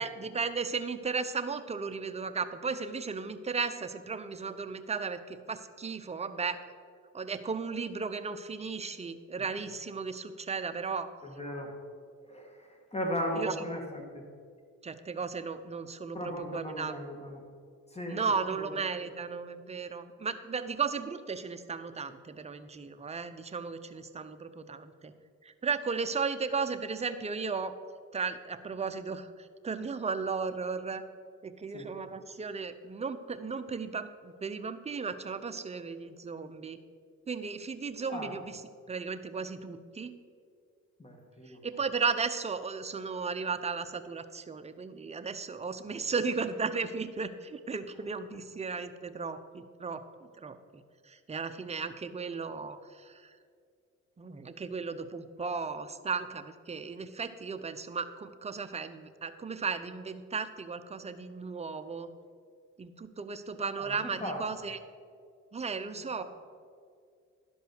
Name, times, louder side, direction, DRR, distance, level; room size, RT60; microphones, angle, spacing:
voice 1, 0.0-6.6 7.1-11.1 13.4-13.5 14.8-16.9 18.1-25.1 25.4-27.7 28.1-31.0 31.4-36.8 37.3-38.6 38.9-40.1 41.5-50.0 50.4-53.4 54.2-62.1 62.8-64.8 65.5-66.2, right 5 dB, 20° right, 9 dB, 0.6 m, -35 dB
voice 2, 11.2-11.7 12.2-14.2 16.1-17.4 17.9-18.7 31.7-31.9 38.1-38.3 41.0-41.6 45.9-46.0 63.8-64.5 66.1-66.2, equal, 20° left, 1 dB, 1.9 m, -37 dB
11.5 x 5.4 x 6.5 m, 2.1 s
cardioid pair, 90°, 30 cm